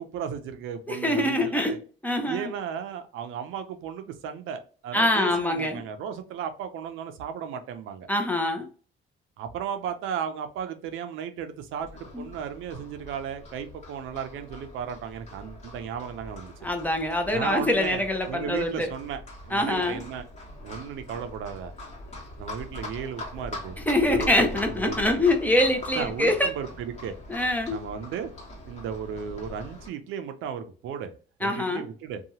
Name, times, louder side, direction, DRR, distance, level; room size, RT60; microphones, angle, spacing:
voice 1, 0.0-1.8 2.3-8.1 9.4-16.5 17.3-20.2 20.6-21.7 22.4-23.8 24.1-25.2 25.9-27.1 27.7-28.3 28.7-31.1 31.4-32.2, right 8 dB, 85° right, 8 dB, 0.5 m, -35 dB
voice 2, 0.9-1.8 2.0-2.5 4.9-5.8 8.1-8.7 12.1-12.3 16.6-18.9 19.5-20.0 23.8-26.5 27.3-27.8 31.4-31.9, left 1 dB, 10° left, 4 dB, 0.6 m, -24 dB
Livestock farm animals working animals, 11.8-29.9, left 1 dB, 35° left, 1.3 m, -42 dB
2.8 x 2.3 x 2.8 m, 0.39 s
cardioid pair, 90°, 20 cm